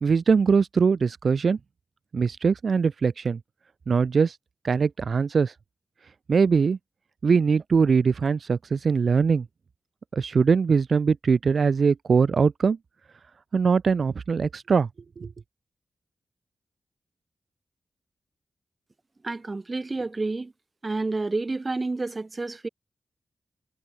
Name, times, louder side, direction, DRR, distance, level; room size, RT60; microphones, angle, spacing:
voice 1, 0.0-1.6 2.1-3.4 3.9-4.4 4.6-5.5 6.3-6.8 7.2-9.5 10.1-12.8 13.5-14.9 15.2-15.3, right 5 dB, 65° right, 0.3 m, -22 dB
voice 2, 19.2-20.5 20.8-22.7, right 3 dB, 40° right, 0.8 m, -29 dB
cardioid pair, 50°, 0 cm